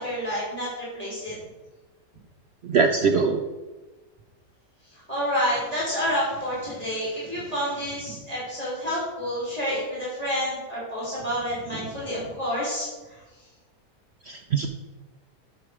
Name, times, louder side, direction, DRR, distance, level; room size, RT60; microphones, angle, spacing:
voice 1, 0.0-1.3 4.9-13.2, equal, 20° right, -8 dB, 3.6 m, -29 dB
voice 2, 2.7-3.4 14.3-14.7, right 5 dB, 65° right, 4 dB, 0.6 m, -22 dB
10.0 x 6.9 x 5.0 m, 1.2 s
omnidirectional pair, 1.8 m